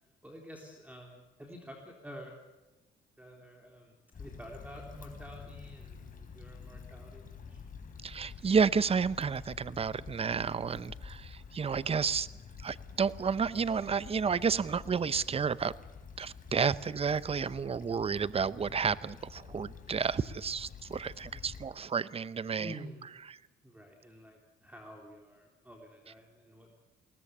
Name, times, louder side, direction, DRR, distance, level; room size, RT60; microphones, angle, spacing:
voice 1, 0.0-2.3 3.2-7.6 21.3-21.4 22.6-23.1 23.6-26.8, equal, 5° right, 0 dB, 3.7 m, -49 dB
Stream / Traffic noise roadway noise / Trickle dribble, 4.1-21.6, left 5 dB, 45° left, 4.1 m, -49 dB
voice 2, 8.0-12.3 12.6-15.7 16.2-22.7, right 6 dB, 30° right, 17 dB, 0.7 m, -31 dB
21.0 x 18.5 x 8.6 m, 1.1 s
cardioid pair, 90°, 20 cm